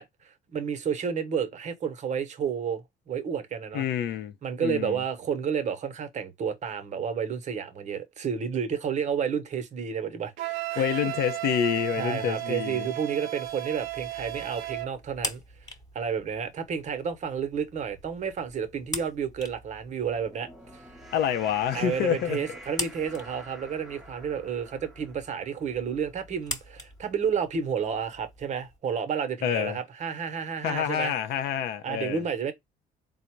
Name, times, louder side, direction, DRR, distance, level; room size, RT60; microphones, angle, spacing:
voice 1, 0.0-3.8 4.4-11.1 12.0-15.4 15.9-20.8 21.7-31.1 31.8-32.5, right 7 dB, 45° right, 0.8 m, -31 dB
voice 2, 3.7-4.3 4.6-5.0 10.8-12.9 21.1-22.4 29.4-29.8 30.6-32.2, left 9 dB, 70° left, 0.6 m, -27 dB
Wind instrument woodwind instrument, 10.4-14.9, right 18 dB, 90° right, 0.5 m, -34 dB
sound 1, 13.4-28.8, left 1 dB, 25° left, 1.0 m, -43 dB
sound 2, 19.8-26.3, right 1 dB, ahead, 0.7 m, -48 dB
3.9 x 2.1 x 4.4 m
cardioid pair, 110°, 17 cm